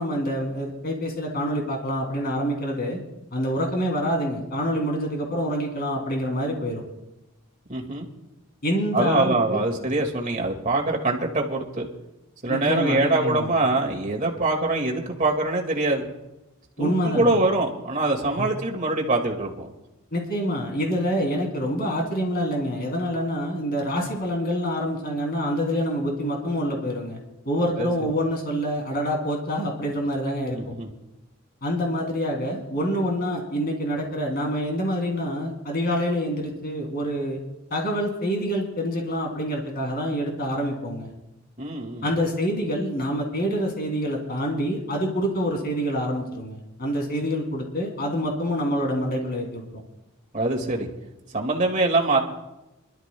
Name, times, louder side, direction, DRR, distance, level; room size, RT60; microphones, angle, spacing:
voice 1, 0.0-3.0 3.3-6.8 8.6-9.6 12.5-13.6 16.8-17.4 18.4-18.5 20.1-27.2 27.4-30.8 31.6-37.4 37.7-41.1 42.0-49.8, equal, 45° left, 0 dB, 2.9 m, -26 dB
voice 2, 7.7-8.1 8.9-11.9 12.4-16.1 16.8-19.7 27.8-27.9 30.5-30.9 41.6-42.1 50.3-50.9 51.3-52.2, right 2 dB, 35° right, 1 dB, 2.0 m, -24 dB
26.0 x 12.5 x 2.3 m, 0.95 s
head